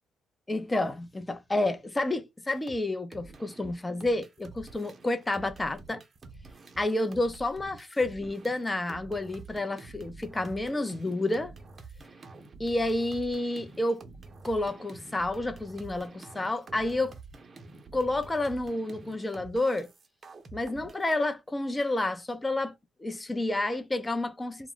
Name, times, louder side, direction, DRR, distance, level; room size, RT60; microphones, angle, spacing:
voice 1, 0.5-6.0 6.8-11.5 12.6-14.0 14.4-17.1 17.9-19.9 20.5-22.7 23.0-24.7, left 2 dB, 20° left, 0.5 m, -30 dB
sound 1, 2.5-2.8 3.1-21.1, right 3 dB, 40° right, 0.6 m, -48 dB
2.2 x 2.1 x 3.7 m
supercardioid pair, 60°, 0 cm